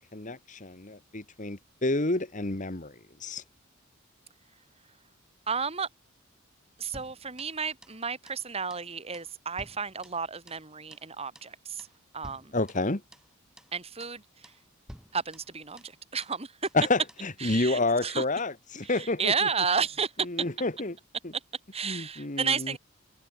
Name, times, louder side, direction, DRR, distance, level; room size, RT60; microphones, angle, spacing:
voice 1, 0.1-3.4 12.5-13.0 16.7-19.5 20.2-21.0 21.2-21.3 21.8-22.8, left 2 dB, 35° left, 1.7 m, -29 dB
voice 2, 5.5-5.9 6.8-11.9 12.1-12.5 13.7-14.2 15.1-16.5 17.4-18.2 19.0-20.1 21.7-22.8, right 5 dB, 30° right, 2.0 m, -32 dB
sound 1, 6.9-8.0 8.3-8.4 8.7-8.9 9.1-10.7 10.9-11.1 11.3-11.5 11.8-12.0 12.2-13.3 13.6-13.7 14.0-14.2 14.4-14.6 14.9-16.4 16.6-16.8 17.1-17.3, equal, 5° right, 6.5 m, -52 dB
head